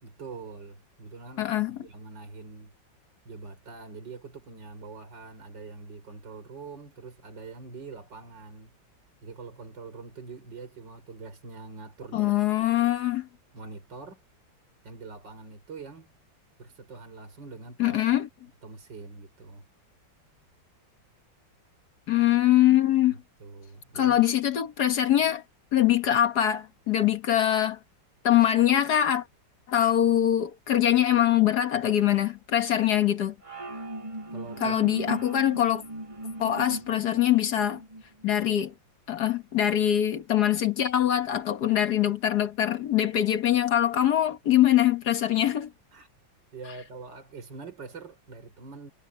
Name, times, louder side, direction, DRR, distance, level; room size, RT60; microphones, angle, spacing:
voice 1, 0.0-2.7 3.2-8.7 9.2-12.7 13.5-14.2 14.8-16.1 16.6-18.0 18.6-19.6 23.1-24.2 34.3-35.0 36.9-37.1 45.9-46.1 46.5-48.9, right 4 dB, 65° right, 5.2 m, -44 dB
voice 2, 1.4-1.8 12.1-13.3 17.8-18.3 22.1-23.2 23.9-25.4 25.7-27.8 28.2-29.2 29.7-33.3 34.6-35.8 36.4-37.8 38.2-38.7 39.1-45.7, left 11 dB, 60° left, 1.6 m, -23 dB
sound 1, 33.4-38.0, right 1 dB, 15° right, 3.9 m, -38 dB
omnidirectional pair, 2.1 m